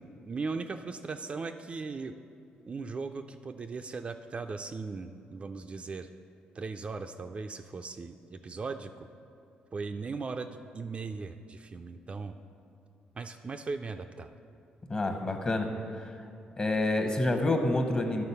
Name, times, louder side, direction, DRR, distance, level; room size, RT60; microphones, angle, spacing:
voice 1, 0.2-2.2 2.7-6.1 6.5-9.1 9.7-12.4 13.2-14.3, right 4 dB, 35° right, 7 dB, 0.3 m, -38 dB
voice 2, 14.9-15.7 16.6-18.2, left 2 dB, 25° left, 5 dB, 0.9 m, -27 dB
11.0 x 4.0 x 5.5 m, 2.4 s
cardioid pair, 85°, 3 cm